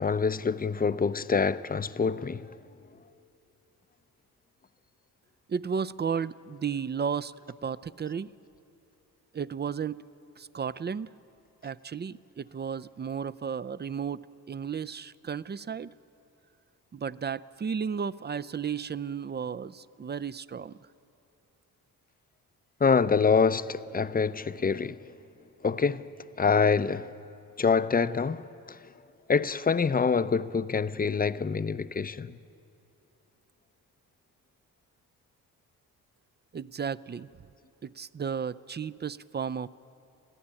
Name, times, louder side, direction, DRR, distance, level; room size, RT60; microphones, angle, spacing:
voice 1, 0.0-2.5 22.8-25.0 25.6-26.1 26.4-27.1 27.6-28.8 29.3-32.3, left 5 dB, 25° left, 0.6 m, -26 dB
voice 2, 5.5-7.3 7.6-8.3 9.3-10.0 10.4-11.1 11.6-15.9 16.9-20.8 36.5-37.3 37.8-39.7, right 6 dB, 25° right, 0.4 m, -33 dB
21.5 x 14.5 x 8.9 m
supercardioid pair, 55°, 39 cm